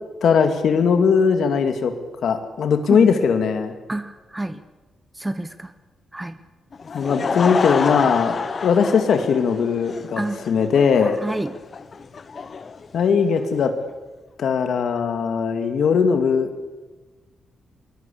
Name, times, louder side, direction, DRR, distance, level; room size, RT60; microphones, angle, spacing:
voice 1, 0.2-1.9 2.2-3.7 6.9-11.2 12.9-13.7 14.4-16.5, left 6 dB, 70° left, 7 dB, 2.2 m, -19 dB
voice 2, 3.9-4.6 5.2-5.7 6.1-6.4 10.2-10.4 11.2-11.5, right 2 dB, 10° right, 12 dB, 0.9 m, -28 dB
Laughter / Crowd, 6.7-13.7, left 5 dB, 45° left, 1.1 m, -28 dB
21.0 x 20.5 x 8.5 m, 1.2 s
cardioid pair, 115°, 0 cm